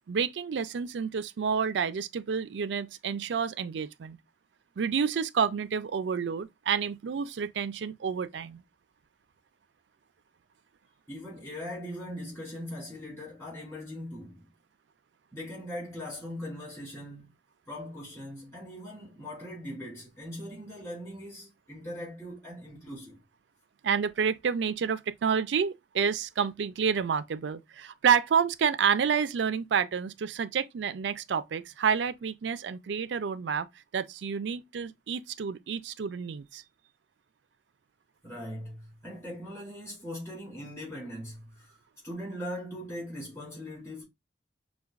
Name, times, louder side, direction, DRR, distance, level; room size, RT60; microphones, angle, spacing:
voice 1, 0.1-4.2 4.8-8.6 23.8-33.7 33.9-36.6, right 6 dB, 75° right, 0.4 m, -29 dB
voice 2, 11.1-14.5 15.3-17.3 17.7-23.2 38.2-41.8 42.0-44.0, equal, 15° left, 2.7 m, -40 dB
5.6 x 2.2 x 2.4 m
head